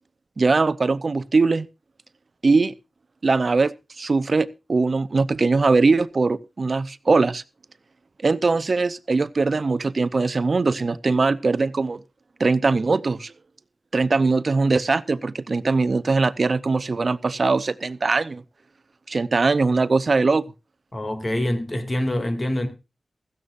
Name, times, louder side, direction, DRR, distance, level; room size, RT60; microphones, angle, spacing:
voice 1, 0.4-1.7 2.4-2.7 3.2-7.4 8.2-12.0 12.4-13.3 13.9-18.4 19.1-20.5, right 3 dB, 50° right, 0.7 m, -21 dB
voice 2, 20.9-22.7, left 1 dB, 25° left, 2.4 m, -25 dB
16.0 x 14.0 x 2.5 m
wide cardioid pair, 115°, 0 cm